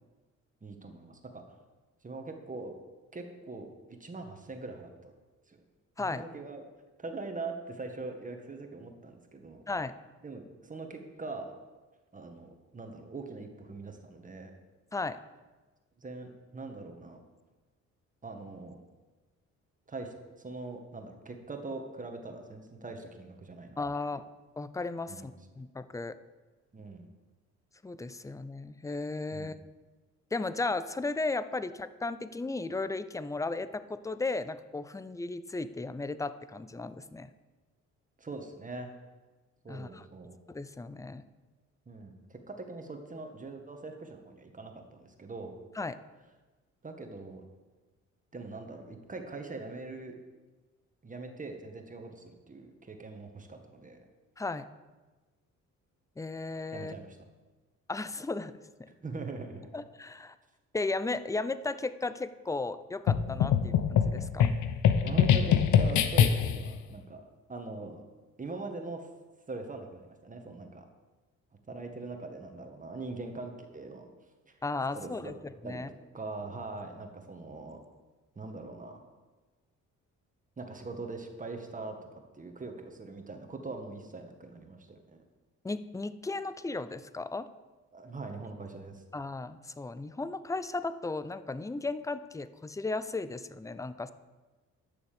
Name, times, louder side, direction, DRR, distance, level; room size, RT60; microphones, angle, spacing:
voice 1, 0.6-1.4 2.0-2.7 3.1-5.1 5.5-5.6 6.0-6.6 7.0-9.6 10.2-11.5 12.1-14.5 16.0-17.2 18.2-18.8 19.9-23.8 25.1-25.7 26.7-27.1 29.3-29.5 38.2-38.9 39.6-40.4 41.9-45.5 46.8-47.4 48.3-50.2 51.0-54.0 56.7-57.2 58.9-59.7 63.5-63.7 65.0-68.0 68.4-69.1 69.5-70.8 71.7-74.1 74.5-74.6 74.9-75.3 75.6-75.8 76.1-77.8 78.4-79.0 80.6-82.0 82.3-85.2 87.9-89.0, right 3 dB, 25° right, 4 dB, 1.8 m, -42 dB
voice 2, 23.8-24.2 24.6-26.1 27.8-29.5 30.3-37.3 39.7-40.0 40.5-41.2 45.8-46.0 54.4-54.7 56.2-56.9 57.9-58.5 58.8-58.9 59.7-60.3 60.7-64.6 74.6-75.4 75.6-75.9 85.6-87.5 89.1-94.1, left 3 dB, 10° left, 14 dB, 0.5 m, -35 dB
sound 1, 63.1-66.7, left 8 dB, 75° left, 0.9 m, -24 dB
11.0 x 7.0 x 6.9 m, 1.2 s
cardioid pair, 90°, 30 cm